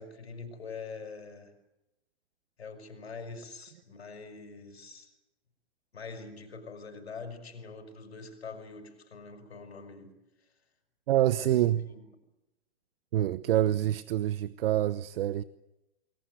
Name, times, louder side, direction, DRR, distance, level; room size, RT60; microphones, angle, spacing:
voice 1, 0.0-1.5 2.6-5.1 5.9-10.5 11.4-12.0, left 4 dB, 85° left, 6.0 m, -44 dB
voice 2, 11.1-11.8 13.1-15.4, right 12 dB, 65° right, 1.0 m, -26 dB
29.0 x 20.5 x 8.0 m
hypercardioid pair, 120°, 31 cm